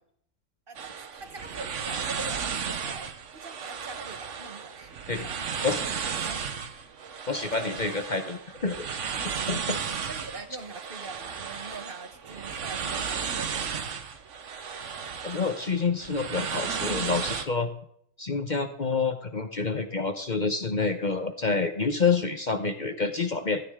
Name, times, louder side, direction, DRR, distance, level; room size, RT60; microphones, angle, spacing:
voice 1, 0.7-5.8 6.1-6.6 9.6-9.7 10.1-13.9 14.8-14.9, right 3 dB, 45° right, 1.2 m, -43 dB
sound 1, 0.7-17.4, right 6 dB, 70° right, 1.3 m, -34 dB
voice 2, 7.3-9.0 9.5-9.8 15.2-17.7 18.2-23.6, left 4 dB, 40° left, 0.9 m, -28 dB
16.0 x 13.0 x 3.6 m
omnidirectional pair, 1.4 m